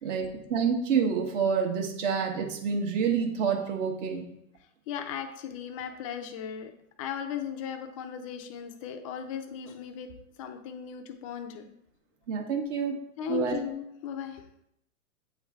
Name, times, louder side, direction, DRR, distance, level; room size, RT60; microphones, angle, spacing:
voice 1, 0.0-4.3 12.3-13.0 13.3-13.6, right 6 dB, 55° right, 3 dB, 1.3 m, -28 dB
voice 2, 4.9-6.7 7.0-10.1 10.4-11.7 13.2-14.4, left 8 dB, 25° left, 6 dB, 0.3 m, -36 dB
8.5 x 3.2 x 3.5 m, 0.77 s
hypercardioid pair, 135°, 44 cm